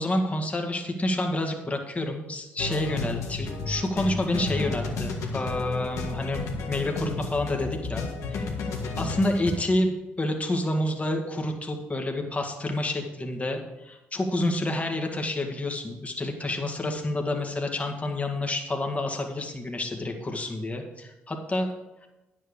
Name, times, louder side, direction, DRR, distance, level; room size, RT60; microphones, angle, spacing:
voice 1, 0.0-8.0 8.3-8.4 9.0-21.7, left 1 dB, 25° left, 3 dB, 1.9 m, -29 dB
sound 1, 2.6-9.6, left 3 dB, 70° left, 1.6 m, -32 dB
10.0 x 7.7 x 5.0 m, 1.0 s
hypercardioid pair, 55°, 5 cm